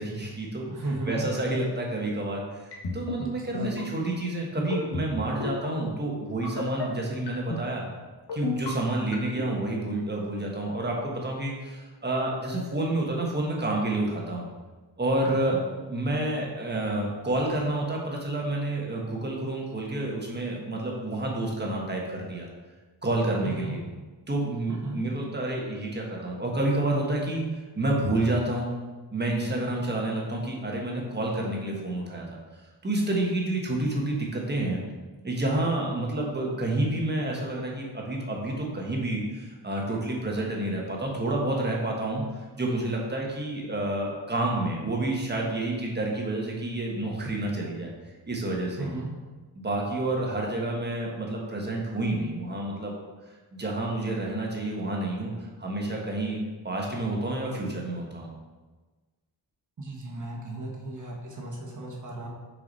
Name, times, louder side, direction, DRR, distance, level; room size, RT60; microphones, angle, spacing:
voice 1, 0.0-0.7 1.1-2.7 2.9-7.8 8.3-14.4 15.0-15.6 15.9-22.5 23.0-23.8 24.3-27.4 27.7-28.7 29.1-32.3 32.8-34.8 35.2-42.2 42.6-47.9 48.2-48.9 49.6-53.0 53.5-55.3 55.6-56.4 56.6-58.3, right 2 dB, 25° right, -1 dB, 1.3 m, -29 dB
voice 2, 0.7-1.3 3.2-3.8 15.2-15.6 23.4-23.8 24.7-25.0 48.8-49.1 59.8-62.3, right 2 dB, 40° right, -2 dB, 1.4 m, -35 dB
sound 1, 2.7-3.2 3.5-3.8 4.6-5.1 5.4-5.7 6.4-6.8 7.3-7.6 8.3-8.7 9.1-9.5, left 4 dB, 60° left, 1.5 m, -31 dB
6.7 x 4.7 x 4.1 m, 1.3 s
wide cardioid pair, 140°, 44 cm